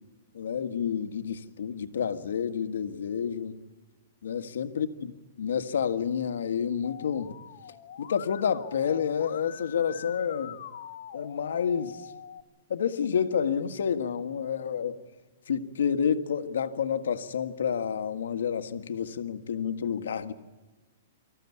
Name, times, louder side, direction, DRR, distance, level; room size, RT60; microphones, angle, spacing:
voice 1, 0.3-3.6 4.2-5.1 5.4-7.3 8.0-10.6 11.1-12.1 12.7-15.0 15.5-20.3, left 7 dB, 85° left, 9 dB, 1.6 m, -29 dB
Musical instrument, 6.8-12.4, left 10 dB, 55° left, 1.8 m, -44 dB
25.0 x 14.5 x 9.7 m, 1.3 s
hypercardioid pair, 160°, 0 cm